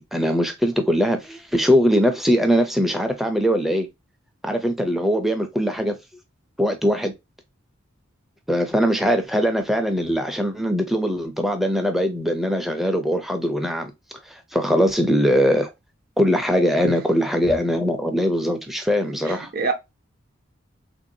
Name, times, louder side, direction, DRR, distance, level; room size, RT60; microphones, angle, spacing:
voice 1, 0.1-3.9 4.4-5.9 6.6-7.1 8.5-13.9 14.3-15.7 16.2-19.5, equal, ahead, 0.5 m, -21 dB
voice 2, 19.2-19.7, right 4 dB, 50° right, 0.7 m, -26 dB
3.4 x 2.6 x 2.6 m
head